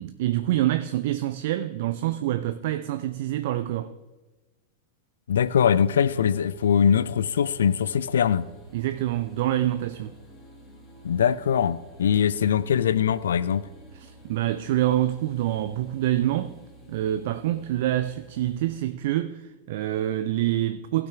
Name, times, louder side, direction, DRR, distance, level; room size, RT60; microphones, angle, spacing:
voice 1, 0.0-3.9 8.7-10.1 13.9-16.6 16.9-21.1, right 13 dB, 55° right, 0.3 m, -26 dB
voice 2, 5.3-8.5 11.0-13.6, left 8 dB, 65° left, 0.3 m, -22 dB
sound 1, 5.4-18.8, right 1 dB, 10° left, 2.8 m, -50 dB
16.0 x 5.9 x 3.5 m
figure-of-eight pair, 90°, 0 cm